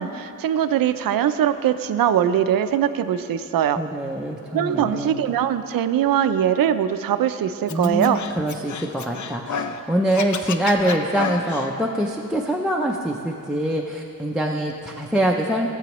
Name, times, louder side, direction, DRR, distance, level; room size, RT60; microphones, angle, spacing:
voice 1, 0.0-3.8 4.5-8.2, right 10 dB, 80° right, 11 dB, 0.5 m, -21 dB
voice 2, 3.8-5.2 7.7-15.7, right 1 dB, ahead, 0 dB, 0.3 m, -24 dB
Scratching (performance technique), 7.7-9.8 10.1-11.7, left 6 dB, 60° left, 0.5 m, -30 dB
16.5 x 7.8 x 3.0 m, 2.7 s
wide cardioid pair, 175°, 34 cm